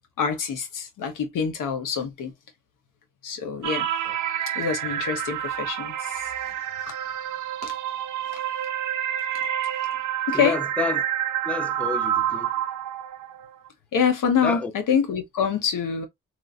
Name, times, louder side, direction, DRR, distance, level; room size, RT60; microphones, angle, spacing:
voice 1, 0.2-2.3 3.2-3.9 4.5-6.2 7.6-7.7 8.3-8.4 10.3-10.6 13.9-16.1, left 7 dB, 85° left, 0.9 m, -25 dB
sound 1, 3.6-13.7, right 10 dB, 70° right, 0.5 m, -28 dB
voice 2, 10.3-11.0 11.5-12.5 14.4-14.7, left 4 dB, 5° left, 0.4 m, -29 dB
3.0 x 2.5 x 2.5 m
cardioid pair, 80°, 31 cm